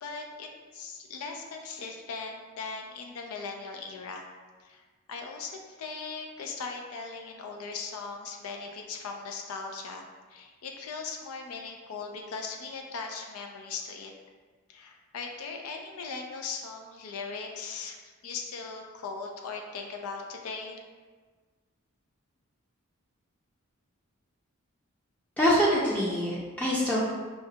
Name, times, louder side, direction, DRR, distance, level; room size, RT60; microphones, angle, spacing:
voice 1, 0.0-4.3 4.6-14.1 14.7-18.0 18.2-20.8, left 4 dB, 85° left, 2 dB, 0.4 m, -39 dB
voice 2, 25.4-27.0, equal, 5° left, -7 dB, 0.5 m, -25 dB
5.6 x 2.1 x 2.7 m, 1.4 s
head